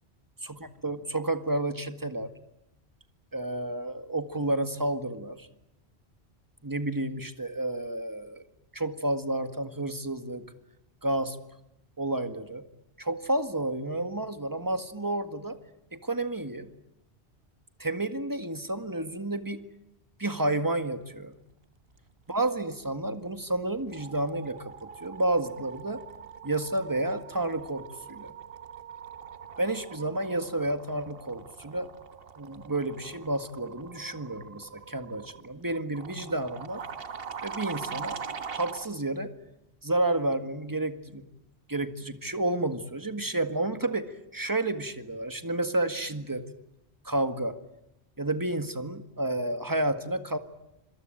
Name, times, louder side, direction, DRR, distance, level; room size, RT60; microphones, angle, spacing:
voice 1, 0.8-2.3 3.3-5.5 6.6-8.4 8.7-10.5 11.0-11.4 12.0-12.6 13.0-15.6 15.9-16.7 17.8-19.6 20.2-21.4 22.3-26.0 26.4-28.3 29.6-31.9 32.4-36.8 37.4-38.2 38.5-39.3 39.8-41.3 41.7-46.5 47.0-47.6 48.2-50.4, right 2 dB, 20° right, 9 dB, 1.8 m, -30 dB
sound 1, 23.1-23.4 23.6-38.9, right 6 dB, 60° right, 1.4 m, -43 dB
27.0 x 22.5 x 9.1 m, 0.86 s
omnidirectional pair, 1.1 m